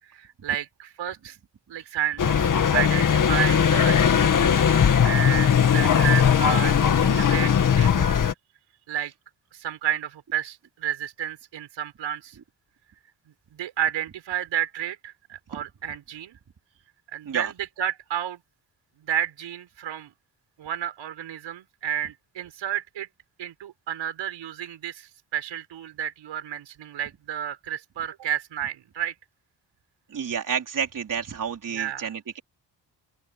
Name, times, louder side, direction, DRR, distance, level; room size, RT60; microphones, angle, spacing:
voice 1, 0.0-1.4 1.7-8.3 8.9-9.1 9.5-12.4 13.5-16.4 17.1-18.4 19.0-20.1 20.6-23.1 23.4-29.1 31.7-32.1, right 10 dB, 85° right, 6.7 m, -31 dB
sound 1, 2.2-8.3, left 8 dB, 45° left, 2.0 m, -19 dB
voice 2, 30.1-32.4, right 7 dB, 45° right, 4.4 m, -30 dB
open air
wide cardioid pair, 145°, 44 cm